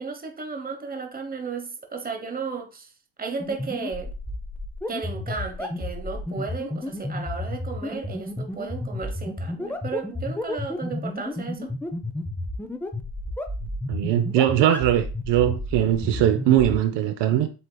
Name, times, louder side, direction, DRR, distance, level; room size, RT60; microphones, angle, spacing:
voice 1, 0.0-2.9 3.2-4.1 4.9-11.7, right 5 dB, 20° right, 0.9 m, -34 dB
sound 1, 3.4-16.8, left 2 dB, 5° left, 0.4 m, -31 dB
voice 2, 13.9-17.5, right 11 dB, 70° right, 0.6 m, -21 dB
7.9 x 2.7 x 2.2 m
cardioid pair, 105°, 44 cm